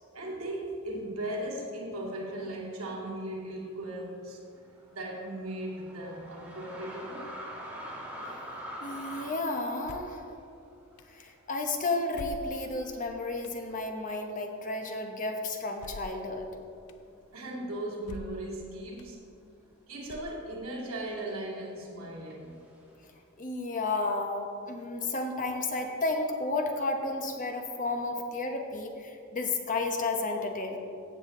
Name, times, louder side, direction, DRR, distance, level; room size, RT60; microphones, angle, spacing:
voice 1, 0.1-4.4 4.9-7.3 17.3-19.2 19.9-22.6, right 1 dB, 75° right, -3 dB, 2.4 m, -37 dB
sound 1, 4.4-12.1 12.4-12.5 13.3-13.8 14.5-14.6 14.9-16.6 16.9-17.5 17.7-21.5 22.3-23.2, equal, 5° right, 1.7 m, -46 dB
voice 2, 8.8-10.2 11.1-16.5 23.4-30.8, left 2 dB, 40° left, 3 dB, 1.1 m, -32 dB
sound 2, 9.8-10.2 11.0-11.1 12.1-12.8 13.4-13.6 15.8-16.2 16.9-17.0 18.0-18.5 19.0-19.1 20.1-20.6, left 2 dB, 85° left, 0.5 m, -44 dB
15.5 x 7.3 x 3.8 m, 2.5 s
head